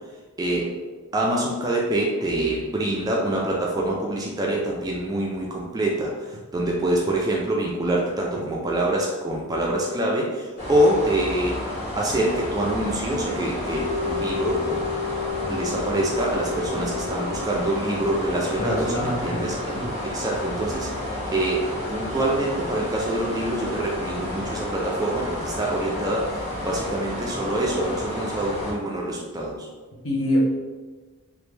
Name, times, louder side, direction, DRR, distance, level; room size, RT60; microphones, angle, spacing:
voice 1, 0.4-0.7 1.1-11.6 12.0-14.9 15.5-19.7 20.0-20.9 21.3-26.3 26.6-29.7, right 1 dB, 15° right, -2 dB, 0.3 m, -25 dB
sound 1, 10.6-28.7, left 1 dB, 35° left, 1.2 m, -31 dB
sound 2, 13.7-23.9 24.2-24.3, left 6 dB, 90° left, 1.1 m, -34 dB
voice 2, 18.6-19.9 30.0-30.5, equal, 60° left, -4 dB, 0.9 m, -25 dB
3.1 x 2.5 x 3.2 m, 1.3 s
head